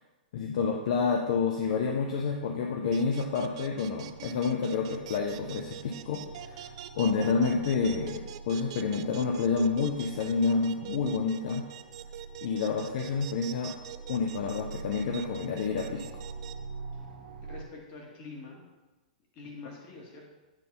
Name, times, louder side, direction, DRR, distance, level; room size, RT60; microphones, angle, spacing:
voice 1, 0.3-6.7 6.9-11.7 12.4-13.7 14.1-16.0, left 5 dB, 45° left, 2 dB, 0.7 m, -29 dB
sound 1, 2.6-17.6, right 4 dB, 85° right, 1.6 m, -45 dB
sound 2, 2.9-16.5, right 13 dB, 40° right, 0.4 m, -43 dB
voice 2, 17.4-18.6 19.3-20.3, left 3 dB, 30° left, -1 dB, 1.7 m, -45 dB
9.0 x 4.1 x 5.4 m, 1.1 s
hypercardioid pair, 165°, 5 cm